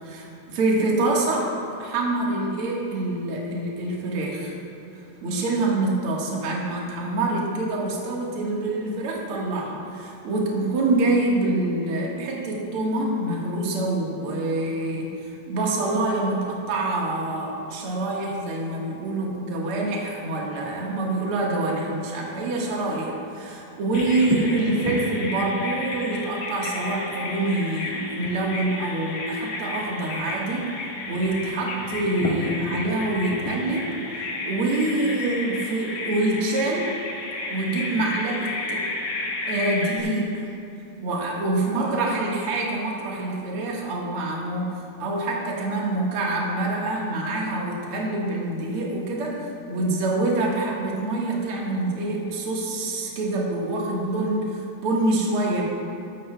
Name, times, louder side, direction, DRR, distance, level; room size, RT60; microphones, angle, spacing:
voice 1, 0.0-1.5 1.8-4.6 4.9-30.7 31.1-36.9 37.5-38.8 39.4-40.4 41.0-55.6, right 2 dB, 60° right, -3 dB, 1.4 m, -26 dB
Bird vocalization bird call bird song, 23.9-40.0, left 2 dB, 55° left, 2.4 m, -31 dB
14.0 x 13.5 x 2.3 m, 2.9 s
omnidirectional pair, 4.8 m